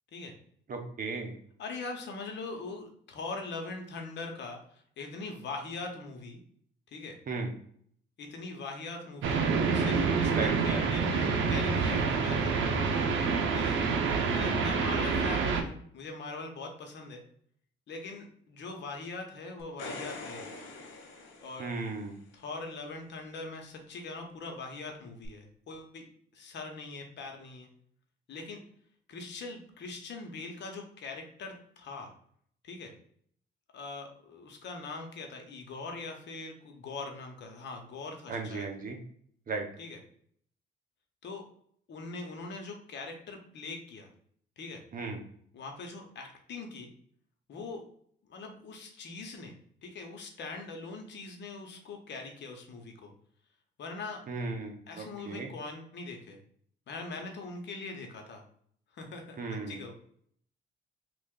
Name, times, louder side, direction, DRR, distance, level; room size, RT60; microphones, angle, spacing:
voice 1, 0.7-1.3 7.3-7.5 10.3-10.9 21.6-22.2 38.3-39.0 39.5-39.7 44.9-45.2 54.3-55.5 59.4-59.8, right 3 dB, 45° right, 3 dB, 0.8 m, -36 dB
voice 2, 1.6-6.4 6.9-7.2 8.2-9.4 9.7-12.8 13.5-13.8 14.3-17.2 17.9-20.5 21.4-21.7 22.3-26.1 26.3-27.7 28.3-28.6 29.1-32.1 32.6-32.9 33.7-38.7 39.8-40.0 41.2-41.4 41.9-44.1 44.6-44.8 45.5-46.9 47.5-47.8 48.3-49.5 49.8-53.1 53.8-54.2 54.9-56.4 56.9-58.4 58.9-59.4 59.7-59.9, left 3 dB, 65° left, 3 dB, 0.9 m, -41 dB
sound 1, 9.2-15.6, right 5 dB, 75° right, 0.6 m, -27 dB
sound 2, 19.6-22.2 25.2-25.3, left 3 dB, 90° left, 0.9 m, -43 dB
3.2 x 2.4 x 3.7 m, 0.63 s
cardioid pair, 90°, 20 cm